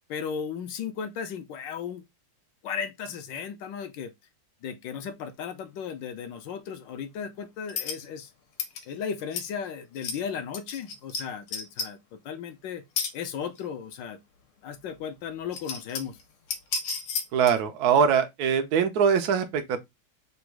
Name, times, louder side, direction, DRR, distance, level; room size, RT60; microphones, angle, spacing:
voice 1, 0.1-2.0 2.6-4.1 4.6-8.3 8.9-12.8 13.1-14.2 14.6-16.2, left 7 dB, 70° left, 1.2 m, -35 dB
sound 1, 7.7-8.0 8.6-8.8 9.3-9.5 9.9-10.2 10.5-11.2 11.5-11.9 13.0-13.1 13.6-13.7 14.9-15.0 15.4-16.2 16.5-17.6, left 5 dB, 85° left, 1.7 m, -32 dB
voice 2, 17.3-19.8, right 7 dB, 70° right, 0.9 m, -22 dB
4.0 x 2.3 x 4.4 m
omnidirectional pair, 2.3 m